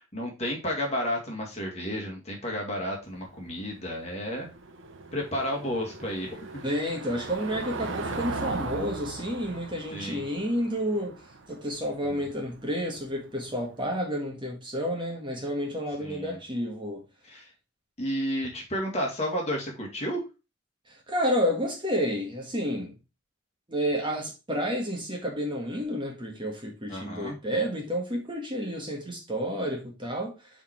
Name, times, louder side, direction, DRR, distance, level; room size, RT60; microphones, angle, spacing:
voice 1, 0.0-4.5 5.1-6.6 9.9-10.2 12.0-12.2 16.0-16.4 17.3-17.5 18.0-20.2 26.9-27.4, equal, 30° left, 2.1 m, -32 dB
Car passing by / Engine, 3.0-13.7, right 3 dB, 70° right, 1.0 m, -39 dB
voice 2, 6.6-11.2 11.5-17.0 20.9-22.9 23.7-30.5, equal, 25° right, 1.7 m, -30 dB
5.5 x 5.0 x 4.5 m
head